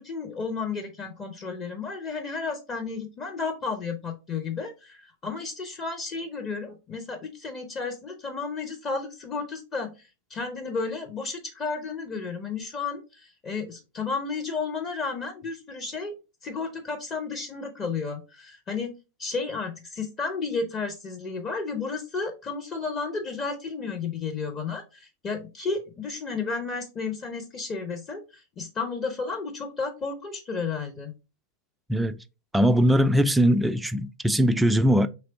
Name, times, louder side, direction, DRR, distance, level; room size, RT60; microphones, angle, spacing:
voice 1, 0.0-16.1 16.4-18.9 19.2-31.1, left 4 dB, 30° left, 0.7 m, -32 dB
voice 2, 32.5-35.1, equal, 5° right, 0.3 m, -21 dB
3.3 x 3.1 x 3.8 m
figure-of-eight pair, 90°, 0 cm